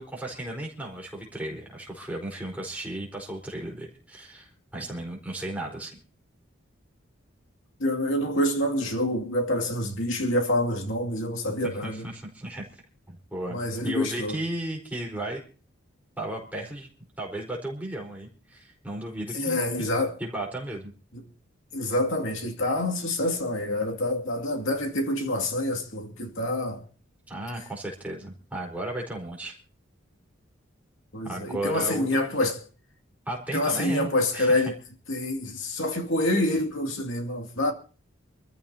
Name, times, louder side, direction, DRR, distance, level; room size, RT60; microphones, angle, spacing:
voice 1, 0.0-6.0 11.8-12.6 13.1-13.6 13.8-15.4 16.2-16.9 17.2-19.6 20.2-20.9 27.3-29.5 31.2-32.2 33.3-34.6, right 1 dB, 10° right, 4.4 m, -35 dB
voice 2, 7.8-12.1 13.5-14.4 19.3-20.2 21.1-21.2 21.7-26.8 31.1-32.6 33.5-34.7 35.1-37.7, left 1 dB, 85° left, 2.4 m, -27 dB
26.5 x 14.5 x 2.9 m
head